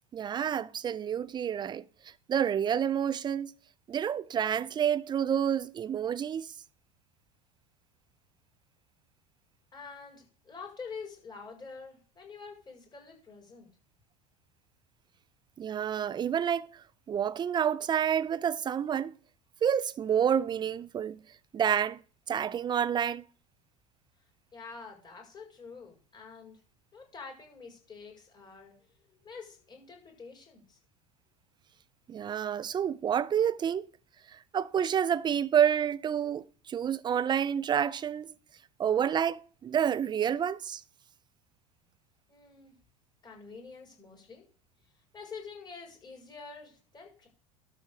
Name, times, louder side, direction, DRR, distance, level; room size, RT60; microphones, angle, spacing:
voice 1, 0.1-1.8 2.3-3.5 3.9-6.5 15.6-19.1 19.6-21.2 21.5-22.0 22.3-23.2 32.1-33.9 34.3-38.3 38.8-40.8, right 8 dB, 25° right, 0.6 m, -29 dB
voice 2, 9.7-13.7 24.5-26.6 26.9-28.8 29.1-30.8 42.3-42.7 43.2-44.4 45.1-47.3, left 5 dB, 25° left, 5.5 m, -47 dB
12.5 x 4.2 x 6.7 m
figure-of-eight pair, 75°, 19 cm